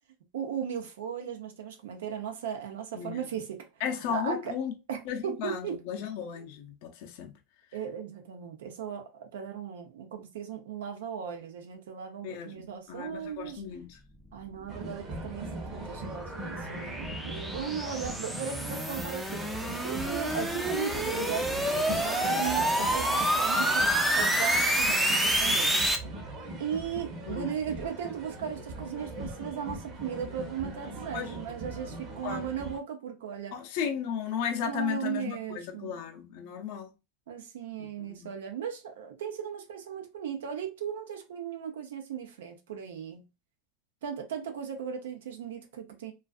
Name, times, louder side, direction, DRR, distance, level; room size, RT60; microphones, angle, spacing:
voice 1, 0.3-3.7 4.1-4.5 4.9-5.8 7.7-13.6 14.3-19.5 19.8-23.9 24.1-25.9 26.6-33.5 34.7-35.9 37.3-43.3 44.0-46.1, right 8 dB, 90° right, 0.6 m, -37 dB
voice 2, 2.9-3.4 3.8-4.7 5.1-7.4 12.2-14.0 27.3-27.5 31.1-31.3 32.2-32.5 33.5-36.9 37.8-38.3, left 8 dB, 60° left, 0.5 m, -35 dB
sound 1, 14.6-26.0, right 1 dB, 5° right, 0.4 m, -28 dB
sound 2, 14.7-32.8, right 1 dB, 35° right, 0.8 m, -40 dB
2.4 x 2.4 x 2.3 m
supercardioid pair, 130°, 0 cm